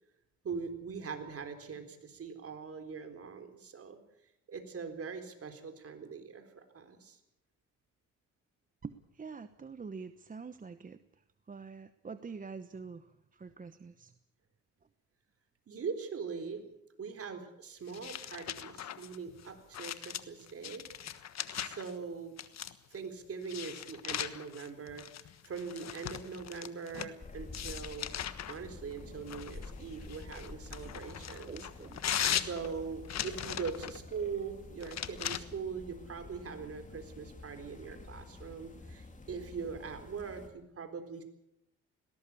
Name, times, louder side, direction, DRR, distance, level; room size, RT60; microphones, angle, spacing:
voice 1, 0.4-4.0 4.5-7.2 15.7-16.7 17.0-20.9 21.5-22.4 22.9-28.1 28.5-31.6 32.2-41.2, right 5 dB, 50° right, 7 dB, 4.0 m, -42 dB
voice 2, 8.8-11.0 11.5-14.1 30.3-30.5 30.8-31.0 31.5-32.0, right 5 dB, 25° right, 11 dB, 1.0 m, -46 dB
sound 1, 17.9-21.9 22.4-22.9 23.4-27.1 27.5-28.6 29.3-34.0 34.8-35.4, left 10 dB, 60° left, 1.4 m, -39 dB
sound 2, 27.2-40.5, left 3 dB, 25° left, 3.8 m, -49 dB
20.0 x 17.5 x 8.5 m, 0.83 s
cardioid pair, 90°, 30 cm